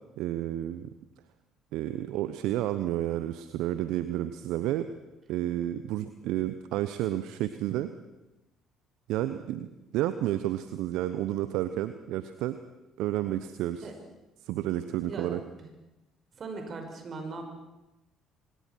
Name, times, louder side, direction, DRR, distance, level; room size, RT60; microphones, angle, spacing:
voice 1, 0.2-0.9 1.7-4.9 5.3-7.9 9.1-12.6 13.0-13.9 14.4-15.4, right 13 dB, 65° right, 12 dB, 0.9 m, -31 dB
voice 2, 15.1-15.4 16.3-17.5, right 3 dB, 45° right, 4 dB, 6.2 m, -39 dB
25.5 x 20.5 x 6.3 m, 1.0 s
hypercardioid pair, 50°, 0 cm